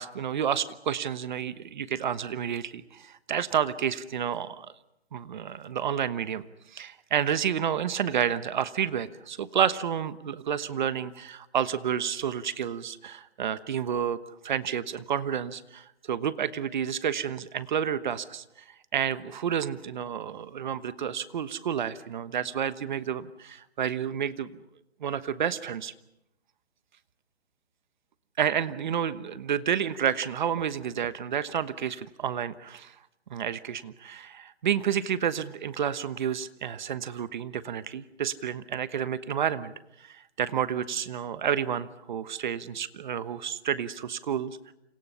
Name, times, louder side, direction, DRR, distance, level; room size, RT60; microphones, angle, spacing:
voice 1, 0.0-4.7 5.1-6.4 6.7-18.4 18.9-24.5 25.0-25.9 28.4-32.9 33.3-39.7 40.0-44.6, right 8 dB, 45° right, 14 dB, 1.2 m, -30 dB
29.0 x 27.0 x 5.7 m, 0.86 s
hypercardioid pair, 155°, 33 cm